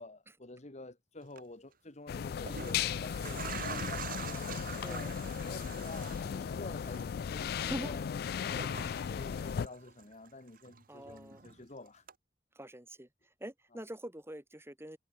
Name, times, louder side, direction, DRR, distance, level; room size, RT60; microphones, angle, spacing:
voice 1, 0.0-5.1 5.4-8.1 8.4-8.7 9.1-12.0 13.7-13.8, left 2 dB, 40° left, 1.7 m, -49 dB
sound 1, 1.2-1.4 2.2-10.3 10.6-11.6 12.1-12.2, right 6 dB, 55° right, 1.5 m, -46 dB
sound 2, 2.1-9.7, left 7 dB, 60° left, 0.3 m, -36 dB
voice 2, 4.8-5.2 7.6-7.9 10.9-11.4 12.5-15.0, equal, 15° right, 6.5 m, -44 dB
head